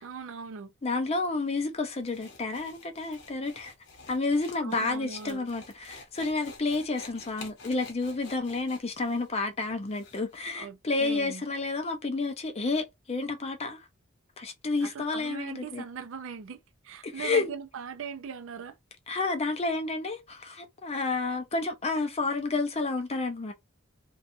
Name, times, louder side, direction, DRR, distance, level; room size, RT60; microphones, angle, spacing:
voice 1, 0.0-0.7 4.6-5.4 10.5-11.4 14.8-18.8, right 6 dB, 65° right, 0.4 m, -40 dB
voice 2, 0.8-3.7 4.1-13.8 14.4-15.8 17.0-17.5 19.1-23.5, left 3 dB, 30° left, 0.5 m, -30 dB
sound 1, 1.9-10.5, left 4 dB, 55° left, 0.8 m, -49 dB
2.6 x 2.3 x 2.5 m
head